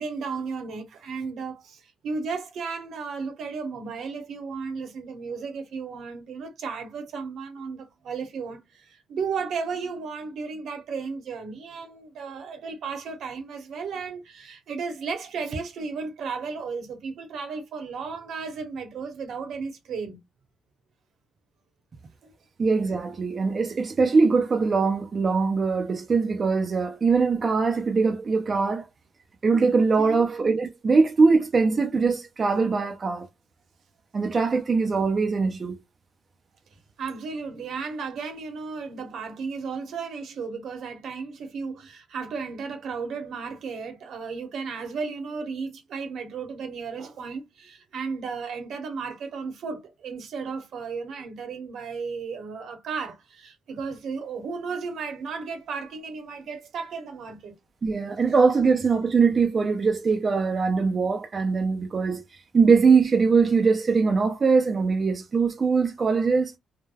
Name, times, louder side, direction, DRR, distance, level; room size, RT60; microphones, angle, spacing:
voice 1, 0.0-20.2 22.2-22.3 30.0-30.2 37.0-57.5, right 5 dB, 70° right, 0.9 m, -34 dB
voice 2, 22.6-28.8 29.4-33.3 34.1-35.8 57.8-66.5, right 4 dB, 40° right, 0.4 m, -22 dB
3.2 x 2.1 x 2.2 m
cardioid pair, 90°, 0 cm